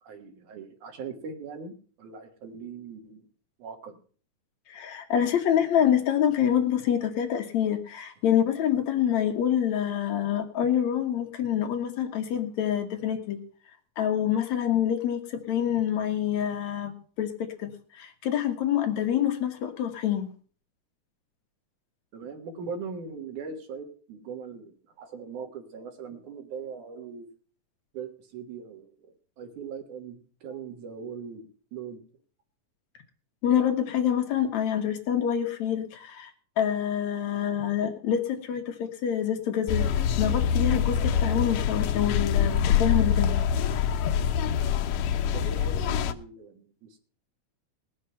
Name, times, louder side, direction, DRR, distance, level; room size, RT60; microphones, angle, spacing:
voice 1, 0.0-3.3 3.6-4.0 22.1-27.3 27.9-32.0 45.3-47.0, right 5 dB, 70° right, 5 dB, 2.9 m, -40 dB
voice 2, 4.7-13.4 14.0-20.3 33.4-39.9 40.2-43.5, left 9 dB, 70° left, 6 dB, 2.3 m, -26 dB
sound 1, 39.7-46.1, left 8 dB, 90° left, 2.4 m, -25 dB
19.5 x 6.6 x 5.6 m, 0.42 s
omnidirectional pair, 3.6 m